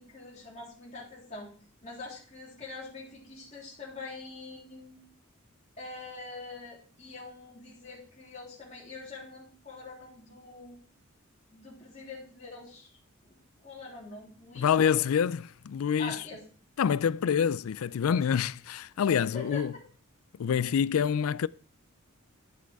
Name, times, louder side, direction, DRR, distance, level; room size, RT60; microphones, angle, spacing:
voice 1, 0.0-1.5 1.8-5.0 5.8-10.8 11.5-12.9 13.3-14.7 16.0-16.4 19.3-19.6, left 3 dB, 35° left, 3.4 m, -44 dB
voice 2, 14.6-16.2 16.8-19.7 20.4-21.5, left 7 dB, 85° left, 0.4 m, -26 dB
11.0 x 6.3 x 4.7 m
head